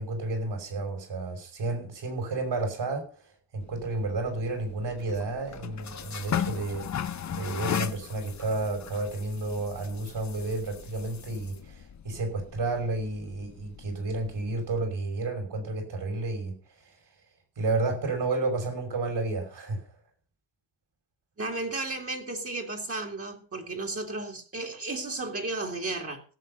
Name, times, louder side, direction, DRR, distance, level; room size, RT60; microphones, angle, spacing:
voice 1, 0.0-3.1 3.5-6.9 7.3-16.6 17.6-19.8, right 2 dB, 65° right, 5.9 m, -31 dB
sound 1, 3.6-14.8, left 8 dB, 40° left, 0.8 m, -38 dB
voice 2, 21.4-26.2, right 2 dB, 30° right, 2.4 m, -34 dB
17.0 x 7.6 x 5.4 m
cardioid pair, 105°, 45 cm